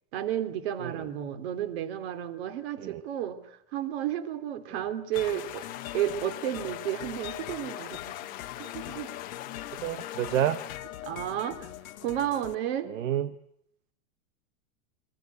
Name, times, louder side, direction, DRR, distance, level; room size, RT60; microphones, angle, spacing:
voice 1, 0.1-5.7 5.9-8.3 8.6-9.1 11.0-11.7 12.0-12.9, right 11 dB, 45° right, 9 dB, 3.0 m, -32 dB
sound 1, 5.1-10.8, left 15 dB, 20° left, 1.1 m, -42 dB
sound 2, 5.2-12.5, left 13 dB, 75° left, 1.5 m, -42 dB
voice 2, 9.8-10.6 12.9-13.3, right 11 dB, 60° right, 13 dB, 1.2 m, -29 dB
27.0 x 23.5 x 8.3 m, 0.74 s
supercardioid pair, 170°, 43 cm